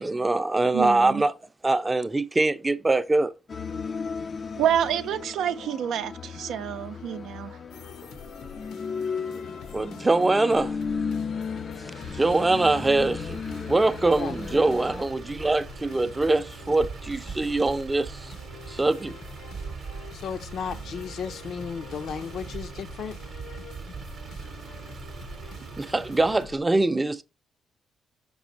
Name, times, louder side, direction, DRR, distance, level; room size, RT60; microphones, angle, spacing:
voice 1, 0.0-1.3 1.6-3.3 9.7-10.8 12.1-13.4 13.7-18.1 18.7-19.1 25.8-27.2, right 2 dB, 20° right, 0.5 m, -23 dB
voice 2, 0.7-1.2 4.6-7.6, right 9 dB, 80° right, 0.5 m, -28 dB
sound 1, 3.5-15.0, left 5 dB, 40° left, 0.4 m, -35 dB
sound 2, 7.7-26.6, left 5 dB, 85° left, 1.2 m, -46 dB
Motor vehicle (road), 11.9-26.5, right 5 dB, 50° right, 0.8 m, -41 dB
voice 3, 20.1-23.2, left 7 dB, 65° left, 0.7 m, -34 dB
6.1 x 4.2 x 4.0 m
cardioid pair, 90°, 0 cm